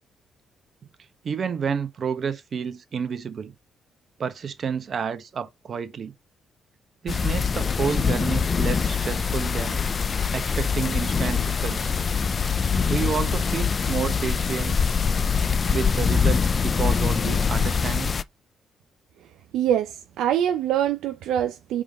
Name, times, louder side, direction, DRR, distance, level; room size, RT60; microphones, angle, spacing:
voice 1, 1.2-3.5 4.2-6.1 7.0-9.8 10.3-11.9 12.9-14.8 15.7-18.1, right 6 dB, 55° right, 1.0 m, -30 dB
sound 1, 7.1-18.2, left 6 dB, 45° left, 0.5 m, -24 dB
voice 2, 19.5-21.8, right 10 dB, 80° right, 0.5 m, -24 dB
5.0 x 3.7 x 5.2 m
supercardioid pair, 55°, 0 cm